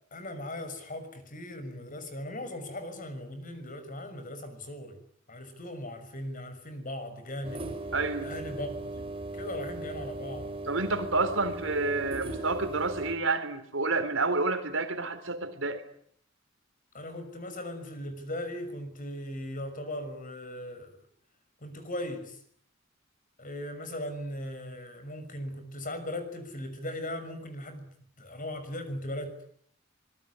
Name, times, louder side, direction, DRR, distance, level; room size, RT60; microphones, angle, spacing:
voice 1, 0.1-5.0 5.3-7.7 8.2-9.1 9.3-10.5 16.9-21.0 21.6-22.4 23.4-29.4, left 1 dB, 45° left, 9 dB, 6.2 m, -38 dB
sound 1, 7.4-13.1, right 2 dB, 30° right, 3.8 m, -38 dB
voice 2, 7.9-8.3 10.7-15.8, right 3 dB, 75° right, 9 dB, 4.0 m, -29 dB
25.5 x 21.0 x 9.8 m, 0.66 s
head